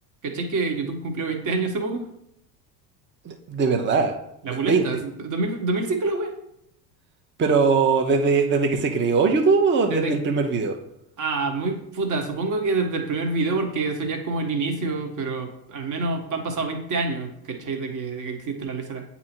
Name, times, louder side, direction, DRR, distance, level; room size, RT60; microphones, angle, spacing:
voice 1, 0.2-2.0 4.4-6.3 9.9-10.1 11.2-19.0, right 3 dB, 40° right, 4 dB, 1.4 m, -27 dB
voice 2, 3.2-4.1 4.5-4.8 7.4-10.8, right 4 dB, 25° right, 4 dB, 0.8 m, -21 dB
8.3 x 2.8 x 4.4 m, 0.77 s
hypercardioid pair, 80°, 47 cm